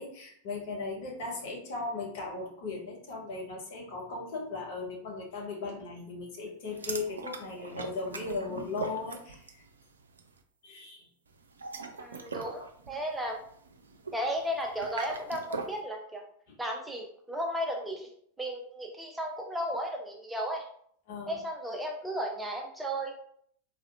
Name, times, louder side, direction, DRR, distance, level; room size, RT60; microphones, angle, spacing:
voice 1, 0.0-9.7 10.6-11.1 16.5-16.6 21.1-21.4, left 3 dB, 50° left, -2 dB, 1.1 m, -37 dB
sound 1, 6.7-9.7 9.9-10.3 11.4-15.8, right 4 dB, 70° right, 0.4 m, -41 dB
voice 2, 12.0-13.4 14.1-16.2 16.6-18.1 18.4-20.7 21.3-23.1, equal, 5° right, 1 dB, 0.5 m, -34 dB
4.0 x 2.7 x 2.5 m, 0.64 s
figure-of-eight pair, 90°, 0 cm